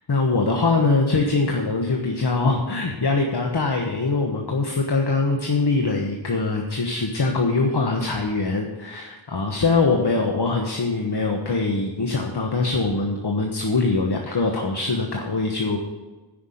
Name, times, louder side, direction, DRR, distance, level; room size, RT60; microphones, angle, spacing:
voice 1, 0.1-15.8, left 3 dB, 60° left, 2 dB, 1.3 m, -23 dB
9.9 x 5.9 x 8.4 m, 1.2 s
wide cardioid pair, 45°, 45 cm